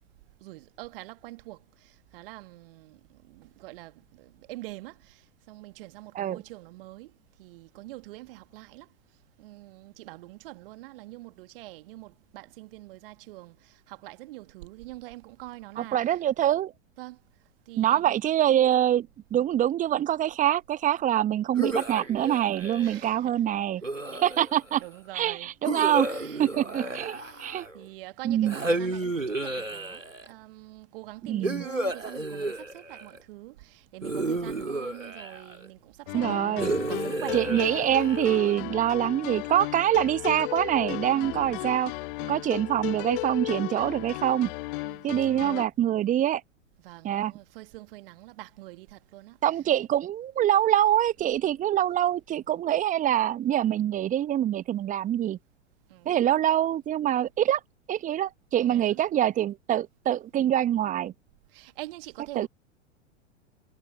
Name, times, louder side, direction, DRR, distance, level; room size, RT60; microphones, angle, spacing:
voice 1, 0.4-7.1 7.4-8.9 9.4-16.0 17.0-17.2 17.7-18.2 22.8-23.3 24.1-24.2 24.8-25.5 26.0-36.6 36.9-37.6 41.1-41.7 42.2-42.5 44.8-45.0 46.8-49.4 55.9-56.2 58.7-59.0 61.5-62.5, right 20 dB, 50° right, 1.7 m, -45 dB
voice 2, 15.8-16.7 17.8-23.8 24.1-24.8 25.1-26.1 26.4-27.7 28.2-28.5 31.3-31.7 36.1-36.7 37.3-41.9 42.3-44.5 45.0-46.4 47.0-47.3 49.4-55.4 56.0-57.6 57.9-61.1 62.3-62.5, right 11 dB, 20° right, 1.0 m, -25 dB
sound 1, 21.6-23.1 23.8-24.7 25.6-27.8 28.5-30.3 31.4-33.2 34.0-35.7 36.6-38.5, right 2 dB, 90° right, 2.7 m, -32 dB
sound 2, 36.1-45.7, left 23 dB, 45° left, 1.2 m, -35 dB
figure-of-eight pair, 95°, 37 cm